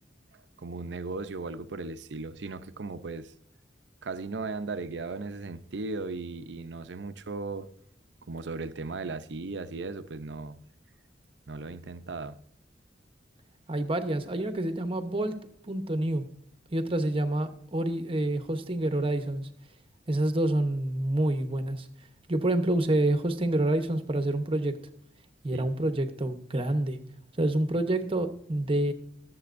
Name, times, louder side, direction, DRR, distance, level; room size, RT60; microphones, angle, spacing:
voice 1, 0.6-3.3 4.0-7.7 8.3-10.6 11.5-12.4 25.5-25.7, right 3 dB, 75° right, 0.6 m, -37 dB
voice 2, 13.7-15.4 15.6-16.2 16.7-19.5 20.1-21.9 22.3-24.7 25.4-27.0 27.4-28.9, right 1 dB, 30° right, 0.9 m, -27 dB
20.5 x 7.6 x 2.6 m
head